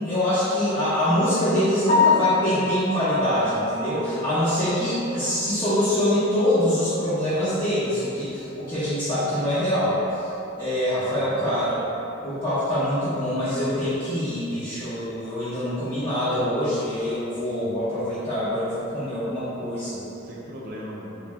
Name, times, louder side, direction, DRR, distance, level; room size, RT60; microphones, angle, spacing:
voice 1, 0.0-10.3 10.6-11.8 12.2-20.0, left 1 dB, 25° left, -13 dB, 0.7 m, -24 dB
Piano, 1.9-5.8 6.2-6.3 6.8-6.9 7.3-7.4 10.4-10.5 19.0-19.3, left 4 dB, 50° left, 0.9 m, -26 dB
voice 2, 10.9-11.7 20.1-21.3, equal, 50° right, -5 dB, 0.5 m, -39 dB
3.1 x 2.6 x 3.4 m, 2.9 s
head